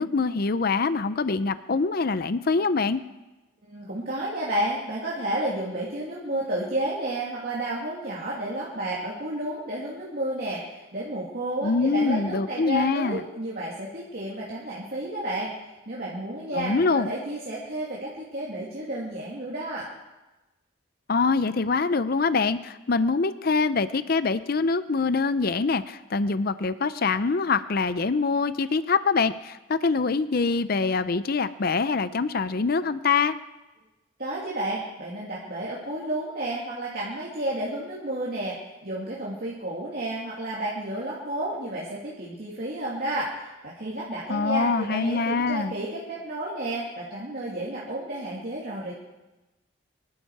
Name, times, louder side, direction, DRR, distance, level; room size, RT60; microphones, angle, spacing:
voice 1, 0.0-3.0 11.6-13.2 16.5-17.1 21.1-33.4 44.3-45.7, left 4 dB, 50° left, 13 dB, 0.5 m, -24 dB
voice 2, 3.6-15.5 15.9-19.9 34.2-38.6 38.8-48.9, right 1 dB, 50° right, -6 dB, 2.6 m, -31 dB
25.0 x 12.0 x 4.8 m, 1.1 s
head